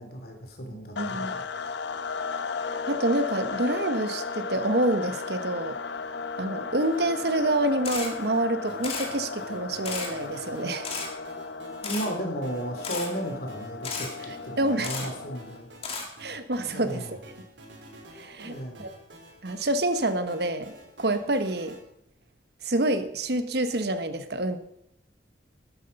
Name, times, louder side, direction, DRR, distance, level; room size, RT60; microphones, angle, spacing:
voice 1, 0.0-1.4 11.8-15.7 16.6-17.2 18.4-18.9, right 1 dB, 55° left, 4 dB, 3.1 m, -35 dB
sound 1, 1.0-15.7, left 4 dB, 80° left, 0.9 m, -35 dB
voice 2, 1.0-1.3 2.9-5.8 6.4-10.9 14.6-15.0 16.2-17.2 18.1-18.9 19.4-21.8 22.6-24.6, right 1 dB, 60° right, 10 dB, 1.2 m, -27 dB
sound 2, 6.8-21.8, right 1 dB, 85° right, 3.3 m, -50 dB
Camera, 7.8-8.1 8.8-9.1 9.8-10.1 10.8-11.1 11.8-12.1 12.8-13.1 13.8-14.1 14.8-15.1 15.8-16.1, left 4 dB, 35° left, 2.5 m, -33 dB
12.5 x 12.5 x 5.4 m, 0.76 s
head